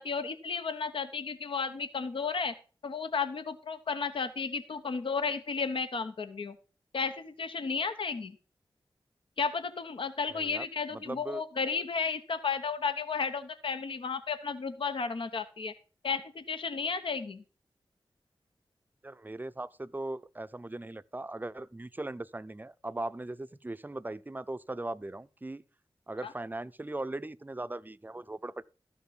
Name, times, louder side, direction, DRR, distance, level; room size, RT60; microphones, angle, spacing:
voice 1, 0.0-2.5 2.8-6.6 6.9-8.4 9.4-15.7 16.0-17.4 26.2-26.3, left 5 dB, 80° left, 0.9 m, -33 dB
voice 2, 10.3-11.4 19.0-25.6 26.1-28.6, right 2 dB, 20° right, 0.6 m, -39 dB
12.5 x 6.0 x 5.7 m
cardioid pair, 45°, 9 cm